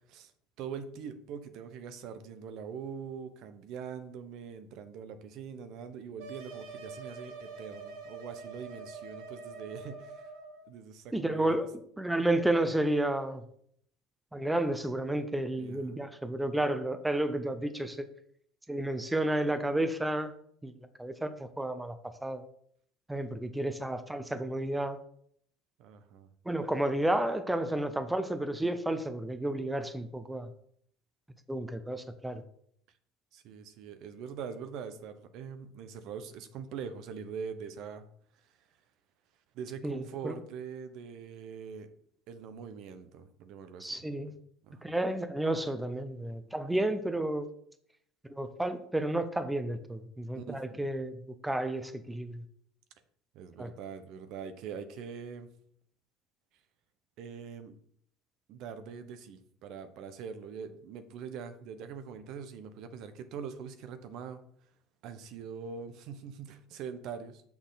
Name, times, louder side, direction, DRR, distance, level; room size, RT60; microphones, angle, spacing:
voice 1, 0.6-10.3 10.7-11.6 15.6-16.0 25.8-26.3 33.3-38.1 39.5-41.9 42.3-44.1 44.6-44.9 50.3-50.9 53.3-55.5 57.2-57.7 58.5-64.4 65.0-67.4, right 6 dB, 60° right, 10 dB, 0.8 m, -43 dB
sound 1, 6.2-10.7, right 4 dB, 85° right, 1.4 m, -45 dB
voice 2, 11.1-11.7 12.0-13.4 14.3-18.0 18.7-20.3 20.6-20.7 21.0-22.0 22.2-22.4 23.1-25.0 26.5-30.5 31.5-32.4 39.8-40.4 43.8-44.3 44.8-47.5 48.3-52.4 53.6-53.7, right 1 dB, 5° right, 10 dB, 0.6 m, -31 dB
6.5 x 5.9 x 4.0 m, 0.65 s
supercardioid pair, 120°, 0 cm